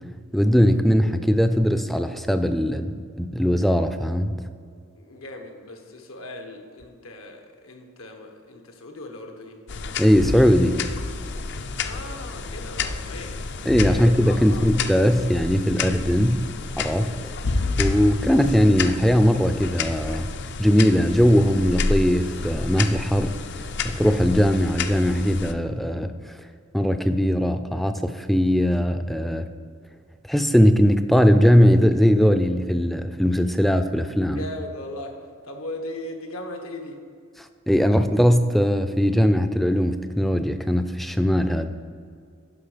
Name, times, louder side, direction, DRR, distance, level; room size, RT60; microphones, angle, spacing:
voice 1, 0.3-4.3 10.0-10.8 13.7-16.4 16.8-17.1 17.8-20.3 20.6-26.1 26.7-29.5 30.3-34.4 37.7-41.7, equal, ahead, 9 dB, 0.3 m, -20 dB
voice 2, 4.9-9.6 11.8-13.5 13.8-14.7 34.3-35.2 35.4-37.0, left 1 dB, 85° left, 4 dB, 1.2 m, -38 dB
sound 1, 9.7-25.5, left 4 dB, 55° left, 0.5 m, -30 dB
11.5 x 5.2 x 5.0 m, 2.2 s
head